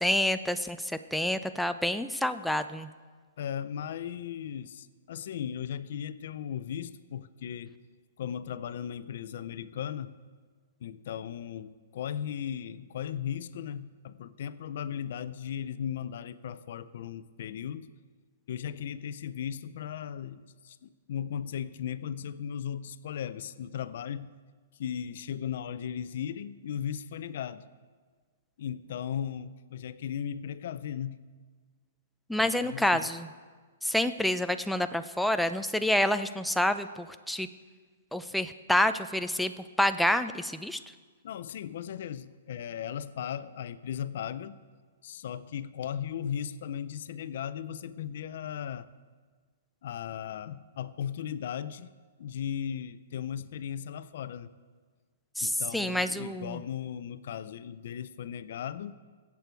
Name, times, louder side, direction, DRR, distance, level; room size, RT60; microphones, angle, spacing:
voice 1, 0.0-2.9 32.3-33.3 33.8-37.5 38.1-40.8 55.4-56.6, left 1 dB, ahead, 9 dB, 0.4 m, -28 dB
voice 2, 3.4-7.8 8.2-10.1 10.8-17.9 18.5-24.3 24.8-27.6 28.6-31.2 32.4-33.1 41.2-44.6 45.0-48.9 49.8-51.9 52.2-54.5 55.4-58.9, left 9 dB, 55° left, 14 dB, 0.5 m, -37 dB
21.5 x 8.3 x 4.6 m, 1.5 s
hypercardioid pair, 165°, 0 cm